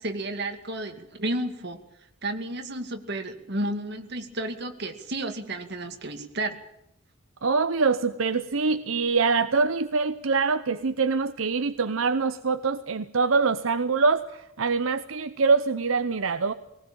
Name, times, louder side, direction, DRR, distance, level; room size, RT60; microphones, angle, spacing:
voice 1, 0.0-1.8 2.2-6.6, right 1 dB, 55° right, 5 dB, 2.3 m, -32 dB
voice 2, 7.4-16.5, right 4 dB, 85° right, 10 dB, 0.8 m, -24 dB
19.5 x 19.5 x 8.7 m, 0.80 s
head